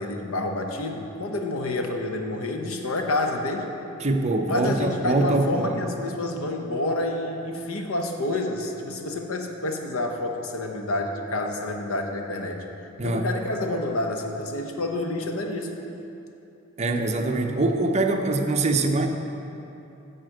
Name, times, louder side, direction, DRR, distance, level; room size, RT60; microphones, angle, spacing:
voice 1, 0.0-3.7 4.5-12.7 13.0-15.8, left 2 dB, 80° left, 3 dB, 0.9 m, -28 dB
voice 2, 4.0-5.8 13.0-13.3 16.8-19.1, right 2 dB, 30° right, 5 dB, 0.6 m, -23 dB
9.9 x 4.2 x 7.7 m, 2.9 s
head